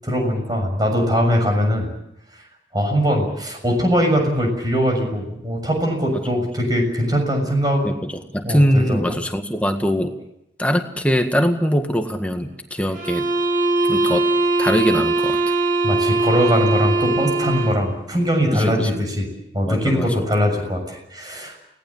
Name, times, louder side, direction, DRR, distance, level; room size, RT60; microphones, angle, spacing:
voice 1, 0.0-1.9 2.7-7.9 8.4-9.2 15.8-19.3 19.5-21.6, equal, 20° right, 3 dB, 6.7 m, -21 dB
voice 2, 7.8-10.1 10.6-13.3 13.9-14.3 14.6-15.4 18.5-19.0 19.6-20.1, equal, 10° left, 5 dB, 1.8 m, -21 dB
sound 1, 12.9-17.9, right 2 dB, 45° right, 2.5 m, -20 dB
29.5 x 18.5 x 7.3 m, 0.81 s
head